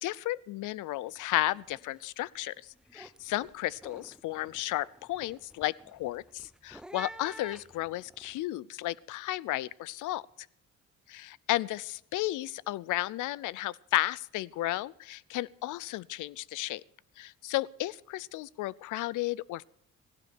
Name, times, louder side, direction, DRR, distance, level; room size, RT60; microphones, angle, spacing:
voice 1, 0.0-2.5 2.9-10.2 11.1-16.8 17.2-19.6, left 17 dB, 85° left, 0.5 m, -33 dB
sound 1, 1.1-1.3 1.6-2.1 2.4-8.4, right 1 dB, 5° right, 0.5 m, -49 dB
16.5 x 16.0 x 4.4 m
cardioid pair, 90°, 30 cm